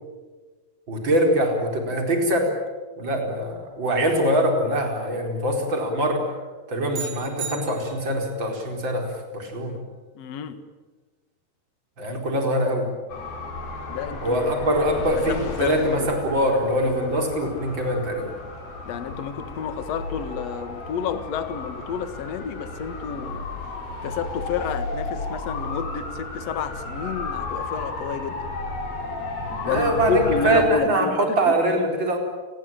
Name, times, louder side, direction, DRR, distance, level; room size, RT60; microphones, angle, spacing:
voice 1, 0.9-2.5 3.0-6.2 6.7-9.1 9.3-9.7 12.0-12.9 14.2-18.3 29.6-32.2, right 1 dB, 30° right, 2 dB, 5.2 m, -23 dB
sound 1, 6.9-8.3, right 7 dB, 60° right, 4.0 m, -35 dB
voice 2, 10.2-10.6 13.9-14.5 15.3-16.1 18.9-23.5 24.0-28.5 29.6-31.1 31.5-31.8, left 7 dB, 55° left, 11 dB, 2.4 m, -30 dB
sound 2, 13.1-30.7, left 3 dB, 90° left, 6.1 m, -33 dB
30.0 x 21.5 x 9.0 m, 1.4 s
omnidirectional pair, 4.1 m